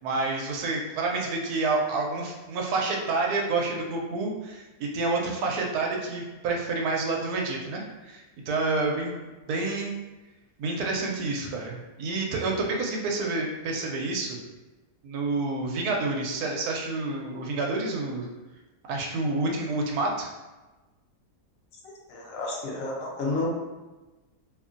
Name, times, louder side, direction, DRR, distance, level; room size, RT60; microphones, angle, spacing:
voice 1, 0.0-9.2 9.5-9.9 10.6-14.4 15.0-18.3 18.9-20.3, right 3 dB, 75° right, 0 dB, 1.0 m, -28 dB
voice 2, 21.8-23.5, left 3 dB, 70° left, -2 dB, 1.0 m, -31 dB
2.8 x 2.5 x 2.4 m, 1.1 s
omnidirectional pair, 1.7 m